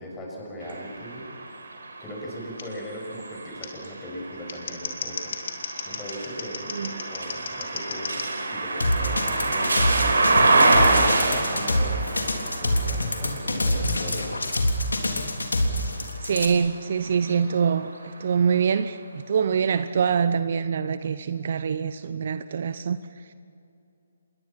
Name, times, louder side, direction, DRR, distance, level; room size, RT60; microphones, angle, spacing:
voice 1, 0.0-1.4 2.0-5.4 5.9-14.3, equal, 10° left, -2 dB, 7.0 m, -39 dB
sound 1, 0.6-16.5 17.1-18.3, right 2 dB, 75° right, 4.7 m, -27 dB
Scissors, 2.6-2.7 3.6-3.7 4.3-8.3 9.8-10.0, left 5 dB, 55° left, 3.2 m, -35 dB
voice 2, 6.7-7.0 16.2-23.3, right 6 dB, 50° right, 13 dB, 0.9 m, -25 dB
sound 2, 8.8-16.5, left 1 dB, 80° left, 3.4 m, -25 dB
27.5 x 22.0 x 6.0 m, 2.6 s
figure-of-eight pair, 140°, 0 cm